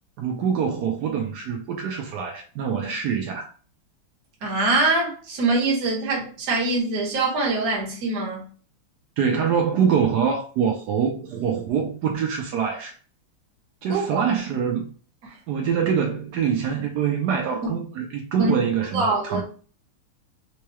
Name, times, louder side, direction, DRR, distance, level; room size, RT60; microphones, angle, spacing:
voice 1, 0.2-3.5 9.2-12.9 13.8-14.9 15.5-19.4, right 7 dB, 85° right, 0.9 m, -24 dB
voice 2, 4.4-8.5 13.9-14.2 17.6-17.8 18.4-18.5 18.9-19.4, right 3 dB, 50° right, 1.4 m, -23 dB
4.6 x 2.3 x 3.0 m
omnidirectional pair, 2.4 m